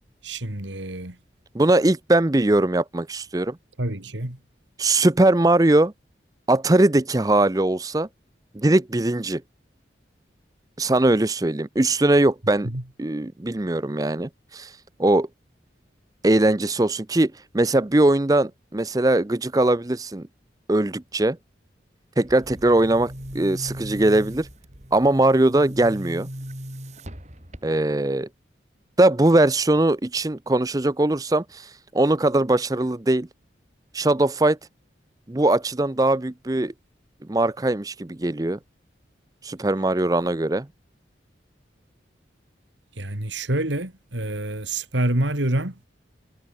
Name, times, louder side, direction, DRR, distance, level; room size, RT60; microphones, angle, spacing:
voice 1, 0.2-1.2 3.8-4.4 12.6-12.8 43.0-45.8, right 1 dB, 85° right, 3.1 m, -27 dB
voice 2, 1.5-3.6 4.8-5.9 6.5-8.1 8.5-9.4 10.8-12.7 13.0-14.7 15.0-15.3 16.2-20.2 20.7-21.4 22.2-24.5 24.9-26.3 27.6-28.3 29.0-31.7 31.9-33.3 33.9-34.6 35.3-36.7 37.3-38.6 39.4-40.7, right 2 dB, 20° right, 0.6 m, -20 dB
Boom, 22.2-28.0, equal, 40° right, 6.3 m, -38 dB
head